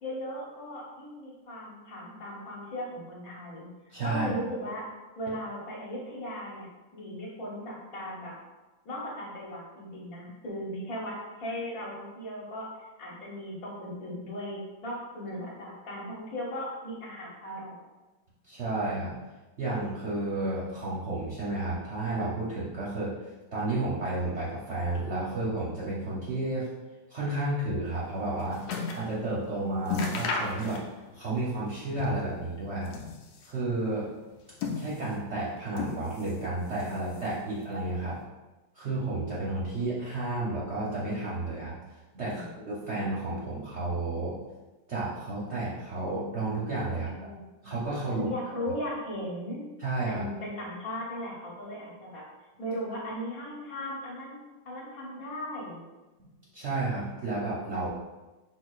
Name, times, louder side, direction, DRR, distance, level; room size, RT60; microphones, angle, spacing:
voice 1, 0.0-3.7 4.0-4.8 5.2-8.3 8.8-12.7 13.0-17.8 42.2-42.5 46.9-47.4 48.1-49.6 50.1-52.2 52.6-54.4 54.6-55.8, equal, 60° left, -4 dB, 1.3 m, -37 dB
voice 2, 3.9-4.4 18.5-19.1 19.6-23.1 23.5-26.7 27.1-28.7 28.9-30.8 31.1-33.0 33.4-34.1 34.7-38.2 38.7-41.7 42.1-44.4 44.9-47.3 47.6-48.3 49.8-50.2 56.2-56.3 56.5-57.9, right 2 dB, 50° right, -7 dB, 0.8 m, -32 dB
sound 1, 27.9-29.1 29.5-29.6 29.8-31.1 31.4-32.4 32.7-33.6 34.2-35.2 35.7-36.4 36.7-37.5 38.2-38.3, left 4 dB, 85° left, 1.3 m, -34 dB
5.0 x 3.7 x 2.4 m, 1.1 s
omnidirectional pair, 1.9 m